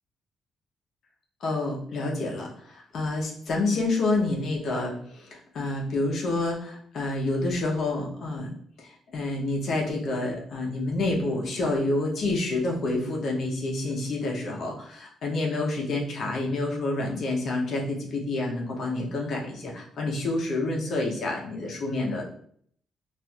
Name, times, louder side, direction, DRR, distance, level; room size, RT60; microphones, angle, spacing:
voice 1, 1.4-8.5 8.8-22.3, left 2 dB, 60° left, -1 dB, 0.7 m, -28 dB
4.1 x 2.5 x 2.3 m, 0.62 s
cardioid pair, 90°, 0 cm